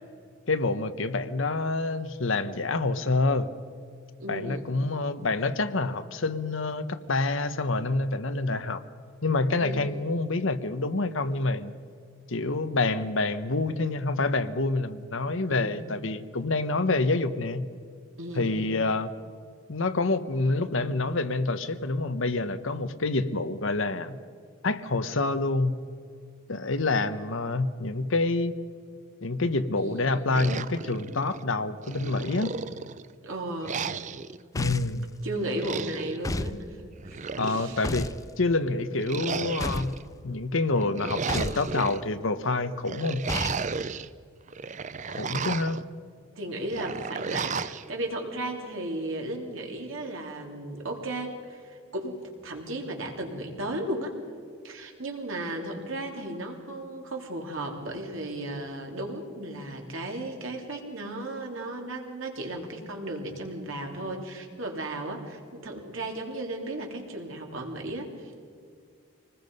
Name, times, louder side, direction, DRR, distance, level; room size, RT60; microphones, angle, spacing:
voice 1, 0.5-3.5 4.3-8.8 9.2-11.7 12.3-17.7 18.4-19.1 19.7-24.2 24.6-25.7 26.5-28.5 29.2-32.6 34.5-35.1 37.4-38.1 38.4-43.3 45.1-45.8, left 3 dB, 65° left, 11 dB, 1.0 m, -27 dB
voice 2, 4.2-4.7 9.6-10.0 15.5-15.8 18.2-18.6 29.8-30.4 33.2-33.8 35.2-36.6 37.0-37.9 46.3-54.1 54.6-68.4, right 1 dB, 65° right, 2 dB, 3.2 m, -35 dB
sound 1, 30.3-31.4 31.9-33.1 33.6-34.4 35.4-36.2 37.0-38.0 39.0-40.0 40.8-42.0 42.9-44.1 44.5-45.8 46.7-47.8, right 5 dB, 35° right, 0.5 m, -34 dB
sound 2, 34.5-35.0 36.2-36.6 37.8-38.2 39.6-40.0 41.3-41.7 43.3-43.6, left 2 dB, 15° left, 0.5 m, -31 dB
26.0 x 20.0 x 5.4 m, 2.2 s
head